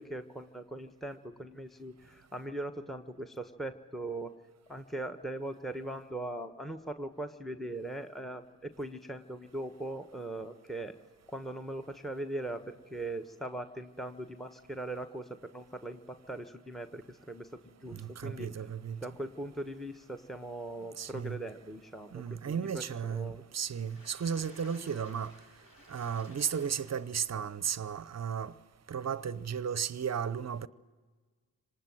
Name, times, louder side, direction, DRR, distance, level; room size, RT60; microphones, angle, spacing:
voice 1, 0.0-4.3 4.7-11.0 11.3-18.7 19.0-23.4, right 1 dB, ahead, 1.2 m, -40 dB
voice 2, 17.9-19.0 21.0-21.4 22.1-25.3 25.9-28.5 28.9-30.7, right 7 dB, 40° right, 0.8 m, -34 dB
Water / Splash splatter, 23.5-27.4 27.9-28.0 28.4-28.5, left 1 dB, 60° left, 7.3 m, -56 dB
26.0 x 19.5 x 7.8 m
supercardioid pair, 50°, 41 cm